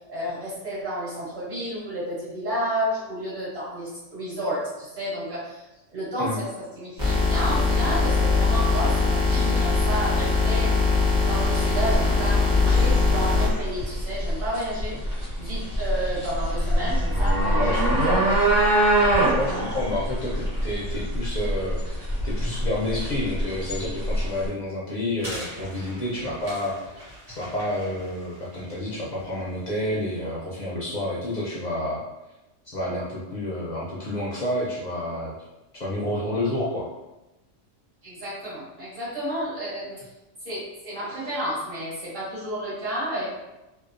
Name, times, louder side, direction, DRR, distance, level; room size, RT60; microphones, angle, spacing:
voice 1, 0.1-6.5 6.8-10.9 11.3-14.9 15.4-17.8 18.1-18.2 38.0-40.0 40.4-43.3, equal, 50° right, -9 dB, 1.2 m, -31 dB
sound 1, 7.0-13.5, left 4 dB, 5° right, 0.5 m, -21 dB
sound 2, 11.4-24.5, right 1 dB, 85° right, 1.2 m, -24 dB
voice 2, 17.5-18.2 19.3-32.0 32.7-35.3 35.8-36.9, left 1 dB, 60° left, -6 dB, 0.4 m, -29 dB
sound 3, 25.2-30.1, equal, 35° right, 1.1 m, -42 dB
2.6 x 2.0 x 2.4 m, 1.0 s
omnidirectional pair, 1.3 m